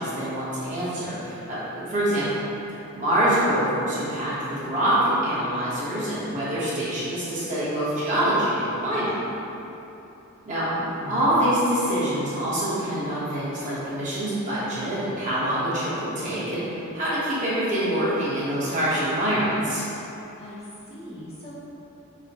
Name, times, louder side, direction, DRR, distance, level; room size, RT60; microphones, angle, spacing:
voice 1, 0.0-2.4 2.7-9.2 10.5-10.7 11.1-19.8, right 1 dB, 35° right, -10 dB, 0.9 m, -25 dB
voice 2, 10.7-11.3 20.4-21.5, left 1 dB, 30° left, -9 dB, 0.6 m, -40 dB
4.9 x 2.0 x 2.8 m, 3.0 s
head